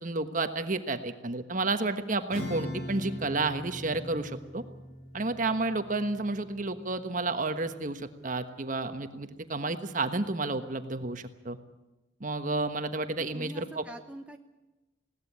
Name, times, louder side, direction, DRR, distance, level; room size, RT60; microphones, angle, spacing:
voice 1, 0.0-4.6 5.1-11.6 12.2-13.8, right 3 dB, 40° right, 9 dB, 1.3 m, -31 dB
Acoustic guitar / Strum, 2.3-8.3, left 1 dB, 85° left, 6.0 m, -42 dB
voice 2, 13.3-14.4, right 1 dB, 5° right, 4 dB, 0.8 m, -43 dB
21.0 x 17.5 x 8.7 m, 1.0 s
head